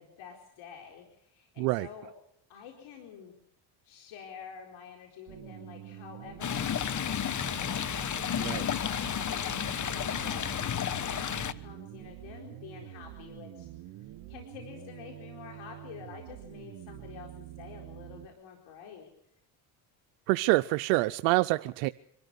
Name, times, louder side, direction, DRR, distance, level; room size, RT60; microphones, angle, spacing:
voice 1, 0.0-2.1 2.5-3.3 3.8-13.7 14.3-19.1, left 7 dB, 70° left, 2 dB, 4.5 m, -48 dB
voice 2, 1.6-1.9 8.4-8.6 20.3-21.9, right 20 dB, 85° right, 12 dB, 0.7 m, -26 dB
sound 1, 5.3-18.3, right 14 dB, 70° right, 1.6 m, -46 dB
Stream, 6.4-11.5, left 8 dB, 35° left, 1.2 m, -32 dB
24.5 x 13.5 x 8.2 m, 0.76 s
supercardioid pair, 80°, 48 cm